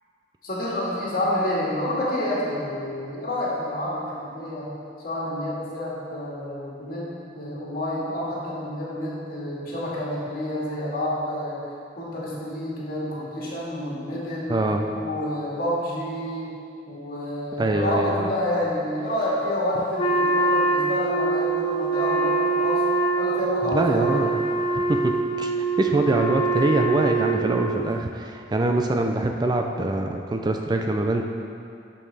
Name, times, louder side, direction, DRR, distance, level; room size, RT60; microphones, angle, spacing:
voice 1, 0.4-4.7 5.0-11.6 12.0-14.6 15.0-16.5 16.9-22.9 23.2-24.4, left 1 dB, 55° left, -6 dB, 2.0 m, -29 dB
voice 2, 14.5-14.9 17.6-18.3 23.6-24.3 24.9-25.1 25.4-25.5 25.8-31.2, right 2 dB, 25° right, 4 dB, 0.4 m, -24 dB
Wind instrument woodwind instrument, 20.0-27.9, right 3 dB, 30° left, 0.6 m, -24 dB
12.0 x 5.4 x 3.4 m, 2.5 s
head